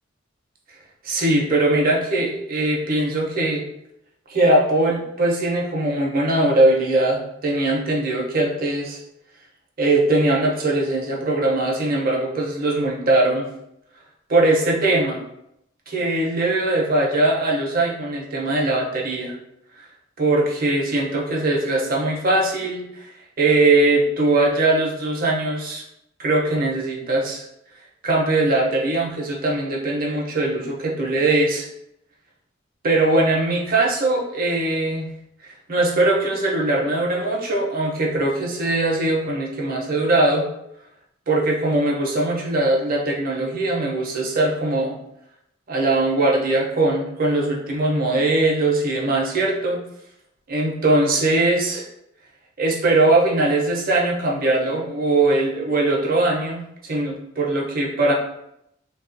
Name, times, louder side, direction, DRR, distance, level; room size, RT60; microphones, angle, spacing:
voice 1, 1.0-3.6 4.3-9.0 9.8-13.5 14.3-15.2 15.9-19.4 20.2-23.1 23.4-25.8 26.2-27.4 28.0-31.7 32.8-35.1 35.7-40.4 41.3-44.9 45.7-49.8 50.5-51.8 52.6-58.1, right 2 dB, 45° right, -2 dB, 0.6 m, -21 dB
3.1 x 2.3 x 2.5 m, 0.80 s
head